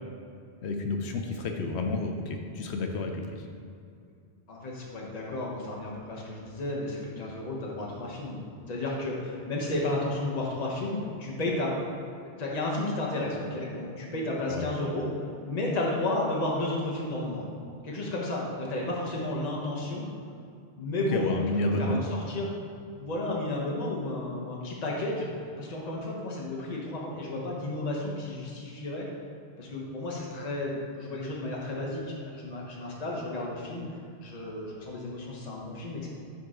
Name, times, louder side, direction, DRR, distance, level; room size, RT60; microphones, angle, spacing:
voice 1, 0.6-3.4 14.5-14.7 21.1-22.0, left 2 dB, 80° left, 4 dB, 1.0 m, -30 dB
voice 2, 4.5-8.4 8.7-11.7 12.4-15.1 15.4-17.5 17.8-20.1 20.8-21.3 21.8-22.5 23.0-25.3 25.6-29.1 29.6-33.8 34.2-36.1, left 2 dB, 40° left, -3 dB, 1.1 m, -32 dB
9.2 x 4.2 x 3.8 m, 2.3 s
omnidirectional pair, 1.1 m